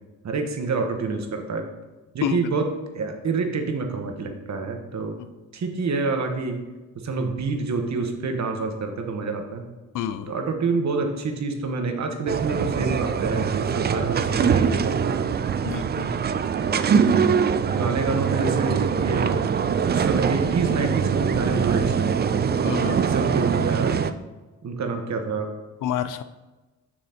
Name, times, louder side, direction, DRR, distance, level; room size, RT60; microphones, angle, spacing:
voice 1, 0.2-1.6 2.1-2.7 2.9-5.2 5.5-6.6 7.0-9.6 10.3-15.2 16.6-17.2 17.7-19.4 19.9-22.4 23.0-23.9 24.6-25.5, right 4 dB, 50° right, 5 dB, 1.2 m, -27 dB
voice 2, 9.9-10.3 15.6-16.2 22.6-23.0 25.8-26.2, left 10 dB, 60° left, 12 dB, 0.5 m, -28 dB
sound 1, 12.3-24.1, right 7 dB, 30° right, 0.4 m, -23 dB
6.3 x 6.3 x 2.9 m, 1.2 s
supercardioid pair, 60°, 36 cm